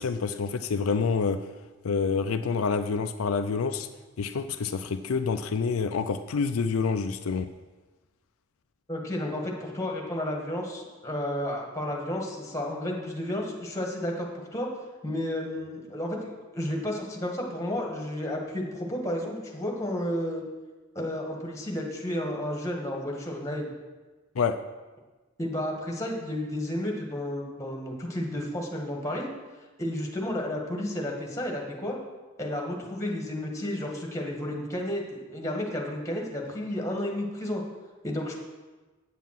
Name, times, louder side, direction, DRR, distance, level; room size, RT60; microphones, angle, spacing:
voice 1, 0.0-1.4 1.8-3.9 4.2-7.5 24.4-24.6, left 5 dB, 80° left, 8 dB, 0.5 m, -27 dB
voice 2, 8.9-14.7 15.0-20.4 20.9-23.7 25.4-29.3 29.8-32.0 32.4-37.6 38.0-38.4, left 1 dB, 15° left, 0 dB, 1.7 m, -32 dB
8.3 x 7.3 x 5.9 m, 1.2 s
head